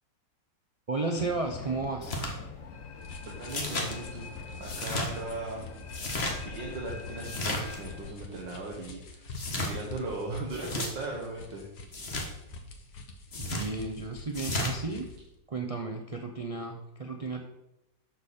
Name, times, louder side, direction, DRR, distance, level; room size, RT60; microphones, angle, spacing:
voice 1, 0.9-2.2 13.4-15.1 15.5-17.4, right 3 dB, 65° right, 3 dB, 0.3 m, -33 dB
sound 1, 1.2-8.1, left 4 dB, 55° left, 1.2 m, -43 dB
sound 2, 2.0-2.3 3.5-3.9 4.6-5.1 5.9-6.3 7.2-7.8 9.3-9.7 10.5-10.9 11.9-12.3 13.3-13.7 14.3-14.7, left 1 dB, 35° left, 1.6 m, -33 dB
sound 3, 3.0-15.2, left 3 dB, 85° left, 1.9 m, -46 dB
voice 2, 3.4-4.3 4.6-5.7 6.4-9.3 9.6-11.7, right 2 dB, 80° right, -2 dB, 2.1 m, -38 dB
11.5 x 6.7 x 4.2 m, 0.91 s
omnidirectional pair, 1.9 m